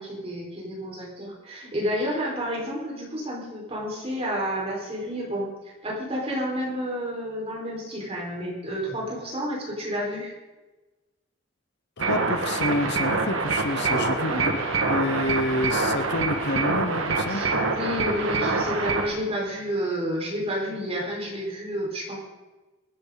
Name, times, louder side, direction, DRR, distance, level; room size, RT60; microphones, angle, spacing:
voice 1, 0.0-5.5 5.8-10.3 14.2-14.5 17.3-22.1, equal, 30° right, -3 dB, 4.7 m, -30 dB
voice 2, 12.0-14.6 14.9-17.4, left 2 dB, 60° left, 9 dB, 1.0 m, -28 dB
sound 1, 12.0-19.1, right 3 dB, 85° right, 1.7 m, -25 dB
23.5 x 10.5 x 4.0 m, 1.2 s
head